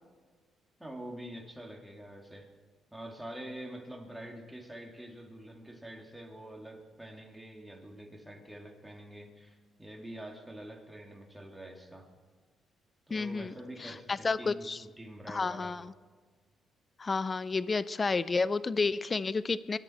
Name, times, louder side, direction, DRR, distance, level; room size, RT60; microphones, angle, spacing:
voice 1, 0.8-2.5 2.9-12.1 13.1-14.7 15.0-15.7, right 1 dB, 5° right, 2 dB, 2.4 m, -46 dB
voice 2, 13.1-13.5 13.8-14.8 15.3-15.9 17.0-19.8, left 4 dB, 30° left, 17 dB, 0.5 m, -31 dB
24.0 x 11.0 x 4.3 m, 1.5 s
cardioid pair, 90°, 0 cm